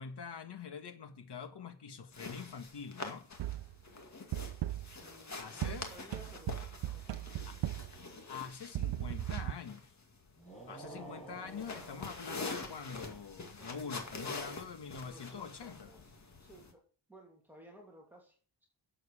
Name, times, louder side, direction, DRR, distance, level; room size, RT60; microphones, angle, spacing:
voice 1, 0.0-3.3 5.4-5.9 7.4-7.6 8.3-9.8 10.7-15.9, left 6 dB, 70° left, 1.7 m, -45 dB
sound 1, 2.1-16.7, left 3 dB, 40° left, 2.2 m, -46 dB
sound 2, 3.4-3.8 4.3-5.0 5.6-8.0 8.7-9.5, right 13 dB, 80° right, 0.7 m, -37 dB
voice 2, 4.9-7.7 10.9-11.1 13.6-14.5 15.0-16.8 17.1-18.7, right 1 dB, 5° right, 2.9 m, -57 dB
sound 3, 10.4-12.7, right 2 dB, 20° left, 6.8 m, -50 dB
12.5 x 7.9 x 5.0 m
wide cardioid pair, 160°, 43 cm